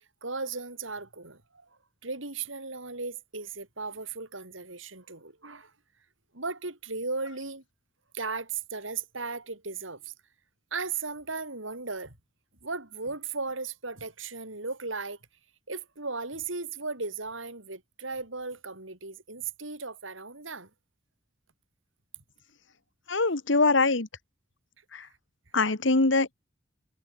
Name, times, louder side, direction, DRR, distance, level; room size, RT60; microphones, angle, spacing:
voice 1, 0.2-1.7 2.0-5.7 6.3-7.6 8.1-10.1 10.7-12.1 12.6-15.2 15.7-20.7 25.0-25.1, right 4 dB, 80° right, 6.0 m, -36 dB
voice 2, 23.1-24.1 24.9-25.0 25.5-26.4, left 3 dB, 70° left, 1.7 m, -23 dB
head